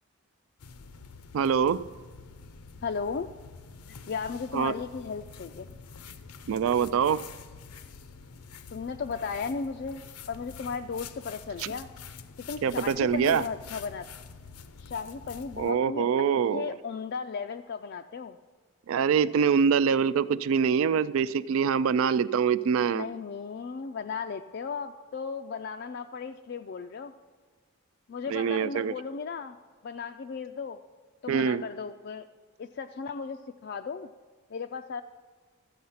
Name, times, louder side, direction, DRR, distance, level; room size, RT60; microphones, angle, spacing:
sound 1, 0.6-15.7, left 5 dB, 85° left, 0.6 m, -47 dB
voice 1, 1.3-1.8 4.5-4.7 6.5-7.2 11.6-11.7 12.6-13.4 15.6-16.7 18.9-23.1 28.3-28.9 31.3-31.6, right 7 dB, 65° right, 16 dB, 0.3 m, -24 dB
voice 2, 2.8-3.3 4.1-5.7 8.7-11.9 12.5-14.1 14.8-16.1 16.5-18.4 22.9-27.1 28.1-29.6 29.8-30.8 31.2-32.3 32.6-34.1 34.5-35.0, left 5 dB, 45° left, 5 dB, 0.3 m, -35 dB
13.0 x 8.5 x 5.6 m, 1.5 s
head